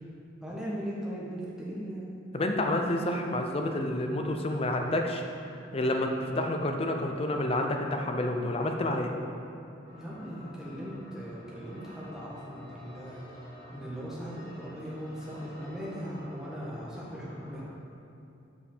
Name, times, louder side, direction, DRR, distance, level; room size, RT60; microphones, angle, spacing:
voice 1, 0.4-2.1 9.9-13.4 13.7-17.6, equal, 5° right, -7 dB, 1.4 m, -39 dB
voice 2, 2.3-5.2 5.7-9.1, left 1 dB, 30° left, 3 dB, 0.5 m, -29 dB
sound 1, 9.8-17.7, left 1 dB, 25° right, 1.7 m, -48 dB
7.0 x 5.3 x 4.4 m, 2.7 s
head